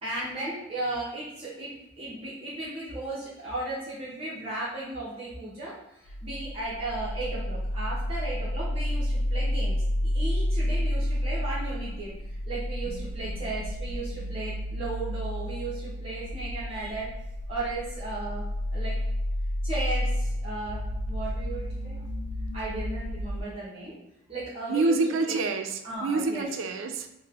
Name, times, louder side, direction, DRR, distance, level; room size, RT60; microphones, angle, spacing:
voice 1, 0.0-1.7 2.0-9.8 10.1-17.1 17.5-19.0 19.6-22.0 22.5-23.9 24.3-25.0 25.2-25.4 25.8-26.5, right 2 dB, 30° right, -8 dB, 0.6 m, -35 dB
sound 1, 6.1-23.4, equal, 75° left, 0.3 m, -31 dB
voice 2, 24.7-27.1, right 3 dB, 75° right, 6 dB, 0.3 m, -27 dB
4.2 x 2.0 x 2.3 m, 0.91 s
head